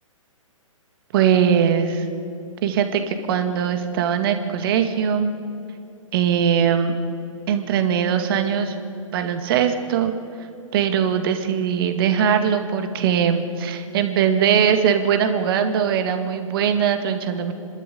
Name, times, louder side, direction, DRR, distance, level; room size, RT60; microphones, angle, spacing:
voice 1, 1.1-2.1 2.6-5.3 6.1-6.9 7.5-8.7 9.1-10.1 10.7-17.5, right 8 dB, 40° right, 7 dB, 2.2 m, -21 dB
27.5 x 13.0 x 8.6 m, 2.6 s
figure-of-eight pair, 125°, 17 cm